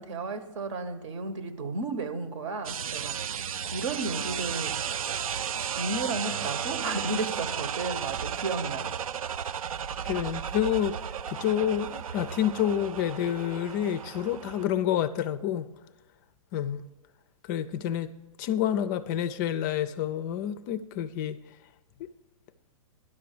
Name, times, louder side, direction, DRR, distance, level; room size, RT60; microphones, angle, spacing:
voice 1, 0.0-3.2 3.7-4.8 5.8-8.9, right 3 dB, 60° right, 1.0 m, -33 dB
sound 1, 2.6-14.7, right 8 dB, 80° right, 0.4 m, -34 dB
voice 2, 10.0-15.7 16.5-16.9 17.4-18.1 18.4-21.4 22.0-22.1, left 10 dB, 35° left, 0.4 m, -28 dB
11.0 x 5.9 x 6.5 m
hypercardioid pair, 125°, 17 cm